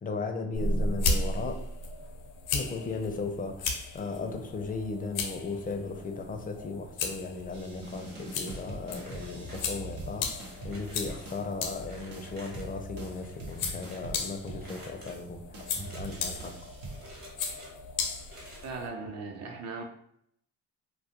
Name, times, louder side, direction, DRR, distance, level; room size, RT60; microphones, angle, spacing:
voice 1, 0.0-1.6 2.5-16.6, left 3 dB, 25° left, 5 dB, 0.4 m, -36 dB
sound 1, 0.5-18.9, left 3 dB, 85° left, 0.5 m, -36 dB
sound 2, 7.5-11.8 12.1-15.2 15.5-17.2, right 2 dB, 80° right, 0.8 m, -44 dB
sound 3, 8.9-10.0 10.4-11.3 11.8-12.8 13.2-14.1 14.6-15.2 15.8-16.5 16.9-17.7 18.2-18.7, right 1 dB, 30° right, 1.0 m, -51 dB
voice 2, 18.6-19.8, right 4 dB, 55° right, 3 dB, 0.6 m, -38 dB
2.3 x 2.2 x 2.8 m, 0.70 s
cardioid pair, 80°, 31 cm